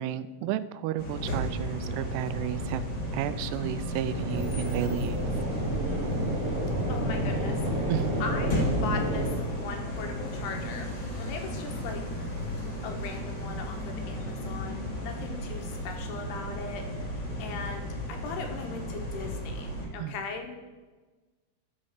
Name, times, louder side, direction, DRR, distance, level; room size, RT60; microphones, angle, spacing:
voice 1, 0.0-2.8 3.1-5.3 7.9-8.1 20.0-20.2, right 11 dB, 85° right, 14 dB, 2.6 m, -32 dB
sound 1, 1.0-19.9, equal, 40° left, 1.8 m, -34 dB
sound 2, 4.1-9.3, right 1 dB, 35° right, 3.5 m, -30 dB
voice 2, 6.9-7.9 8.2-12.0 12.8-20.6, left 5 dB, 80° left, 4 dB, 3.2 m, -39 dB
12.5 x 5.4 x 6.4 m, 1.3 s
omnidirectional pair, 4.7 m